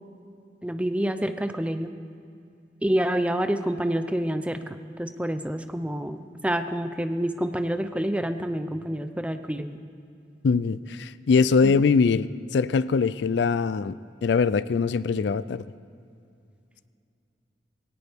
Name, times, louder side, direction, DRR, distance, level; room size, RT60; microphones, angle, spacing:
voice 1, 0.6-1.9 2.8-4.6 5.0-9.8 11.6-11.7, right 1 dB, 5° right, 8 dB, 0.6 m, -27 dB
voice 2, 10.4-14.0 14.2-15.6, left 5 dB, 70° left, 17 dB, 0.4 m, -22 dB
21.0 x 17.5 x 3.5 m, 2.5 s
head